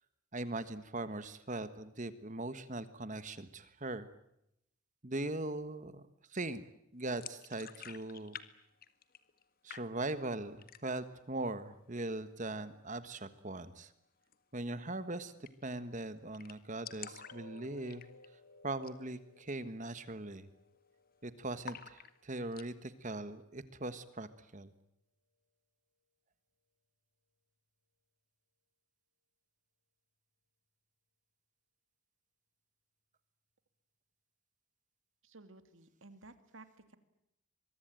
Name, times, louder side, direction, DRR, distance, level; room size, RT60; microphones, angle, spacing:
voice 1, 0.3-4.1 5.0-6.0 6.3-6.6 6.9-8.4 9.6-13.9 14.5-15.3 15.6-18.0 18.6-20.5 21.2-24.7, right 2 dB, 35° right, 13 dB, 1.4 m, -40 dB
sound 1, 7.1-8.5 8.7-9.4 9.7-10.3 10.6-11.1 11.5-11.6 11.9-12.5 14.2-14.4 14.7-14.8 15.0-15.1 15.4-15.8 16.1-16.2 16.3-18.4 18.7-19.0 19.4-19.5 20.0-20.3 20.5-21.1 21.6-22.7, left 8 dB, 40° left, 1.7 m, -49 dB
sound 2, 17.1-23.1 23.5-23.7 24.1-24.2, left 3 dB, 80° left, 3.9 m, -60 dB
voice 2, 35.2-37.0, right 2 dB, 60° right, 10 dB, 2.7 m, -56 dB
24.5 x 23.0 x 9.0 m, 0.81 s
head